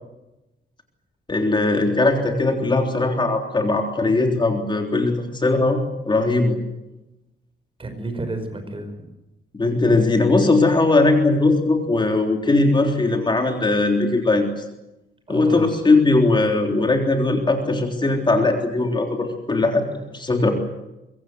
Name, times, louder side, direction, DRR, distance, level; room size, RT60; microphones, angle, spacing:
voice 1, 1.3-5.8 6.1-6.6 9.5-14.5 15.3-20.5, left 2 dB, 25° left, 3 dB, 3.6 m, -19 dB
voice 2, 7.8-9.1 15.3-15.7, right 2 dB, 25° right, 8 dB, 5.4 m, -31 dB
24.5 x 23.5 x 8.1 m, 0.95 s
wide cardioid pair, 150°, 20 cm